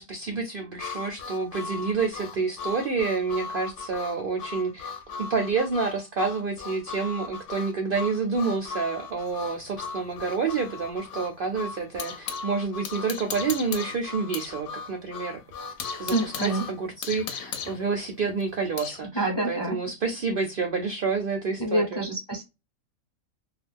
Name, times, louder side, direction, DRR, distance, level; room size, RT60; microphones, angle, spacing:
voice 1, 0.0-5.0 5.3-15.4 16.0-22.0, right 4 dB, 60° right, 0.6 m, -29 dB
Harmonica, 0.8-16.8, left 4 dB, 65° left, 0.9 m, -38 dB
sound 1, 9.3-12.5 12.8-14.6 14.9-15.0 15.4-19.0, left 7 dB, 90° left, 1.0 m, -37 dB
voice 2, 16.1-16.7 19.1-19.8 21.6-22.4, right 2 dB, 25° left, 0.7 m, -27 dB
2.4 x 2.3 x 3.3 m
omnidirectional pair, 1.4 m